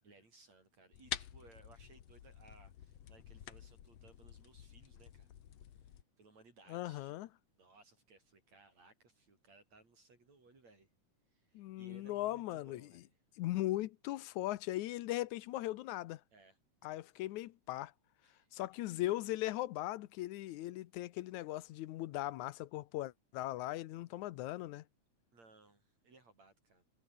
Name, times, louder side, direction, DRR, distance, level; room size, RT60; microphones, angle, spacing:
voice 1, 0.0-5.3 5.8-7.2 7.6-10.9 11.3-13.1 16.3-16.6 18.2-18.5 25.3-26.9, right 3 dB, 65° right, 7.6 m, -63 dB
sound 1, 0.9-6.0, left 10 dB, 60° left, 2.5 m, -48 dB
voice 2, 6.7-7.3 11.5-12.9 13.4-16.2 16.8-17.9 18.5-24.8, left 16 dB, 85° left, 2.2 m, -39 dB
omnidirectional pair, 3.3 m